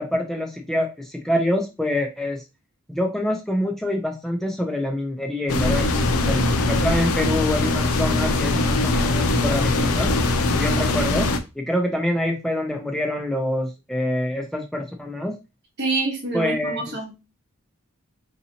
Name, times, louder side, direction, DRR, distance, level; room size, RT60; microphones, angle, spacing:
voice 1, 0.0-2.4 2.9-5.9 6.3-10.1 10.5-11.3 11.6-15.3 16.3-16.9, left 1 dB, ahead, 0.4 m, -26 dB
sound 1, 5.5-11.4, left 2 dB, 75° left, 0.5 m, -21 dB
voice 2, 15.8-17.2, right 3 dB, 50° right, 1.3 m, -26 dB
3.9 x 2.8 x 2.7 m
head